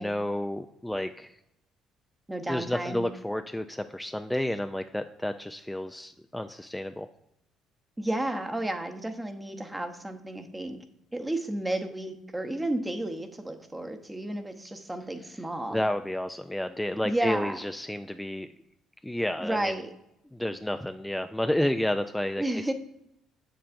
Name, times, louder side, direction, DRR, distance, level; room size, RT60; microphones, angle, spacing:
voice 1, 0.0-1.4 2.5-7.1 15.2-15.4 15.7-18.5 19.0-19.7 20.3-22.7, left 1 dB, 5° left, 8 dB, 0.3 m, -31 dB
voice 2, 2.3-3.1 8.0-10.8 11.1-15.8 17.0-17.6 19.4-19.9 22.4-22.7, right 1 dB, 15° right, 7 dB, 0.8 m, -32 dB
7.4 x 6.9 x 2.5 m, 0.83 s
supercardioid pair, 65°, 0 cm